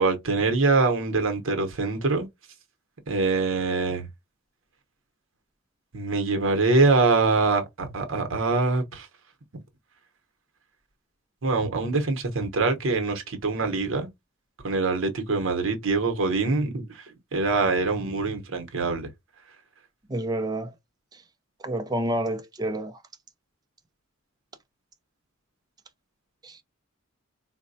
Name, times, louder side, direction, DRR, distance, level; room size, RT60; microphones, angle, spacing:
voice 1, 0.0-2.3 3.1-4.1 5.9-9.1 11.4-14.1 14.6-17.0 17.3-19.1, right 3 dB, 70° right, 0.8 m, -24 dB
voice 2, 20.1-20.7 21.1-21.2 21.6-23.0 26.4-26.6, right 1 dB, 20° right, 0.5 m, -29 dB
4.0 x 2.1 x 2.6 m
head